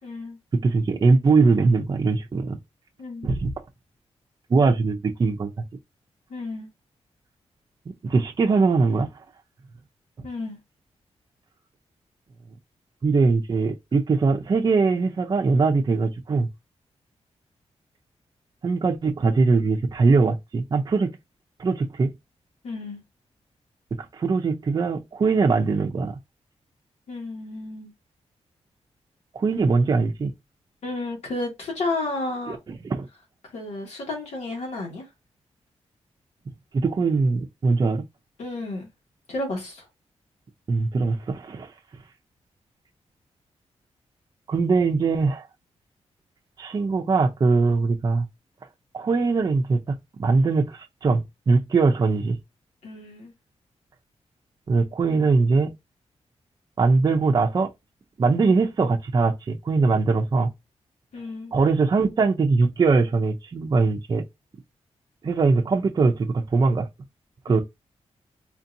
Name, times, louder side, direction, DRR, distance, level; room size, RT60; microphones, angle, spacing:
voice 1, 0.0-0.4 3.0-3.4 6.3-6.7 10.2-10.6 22.6-23.0 27.1-27.9 30.8-32.6 33.5-35.1 38.4-38.9 39.3-39.9 52.8-53.3 61.1-61.5 67.5-67.6, left 2 dB, 80° left, 2.0 m, -32 dB
voice 2, 0.5-2.6 3.2-3.5 4.5-5.5 8.0-9.1 13.0-16.5 18.6-21.1 21.6-22.1 23.9-26.2 29.3-30.3 32.5-32.6 32.8-33.1 36.7-38.0 40.7-41.7 44.5-45.5 46.6-48.3 48.9-52.4 54.7-55.7 56.8-57.7 58.2-60.5 61.5-64.2 65.2-66.9 67.4-67.6, right 4 dB, 35° right, 0.6 m, -21 dB
4.4 x 2.8 x 2.6 m
wide cardioid pair, 155°, 11 cm